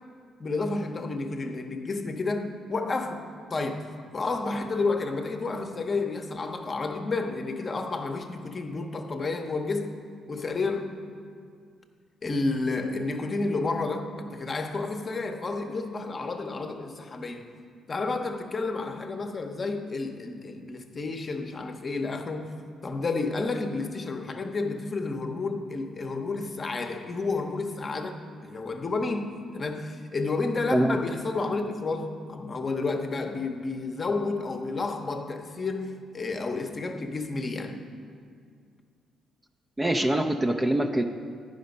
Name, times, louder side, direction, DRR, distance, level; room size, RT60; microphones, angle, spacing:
voice 1, 0.4-3.9 4.1-10.0 10.3-10.9 12.2-17.5 17.9-22.5 22.8-37.8, left 3 dB, 35° left, 0.7 m, -31 dB
voice 2, 39.8-41.0, right 1 dB, 15° right, 0.4 m, -24 dB
10.0 x 5.2 x 5.2 m
cardioid pair, 90°, 0 cm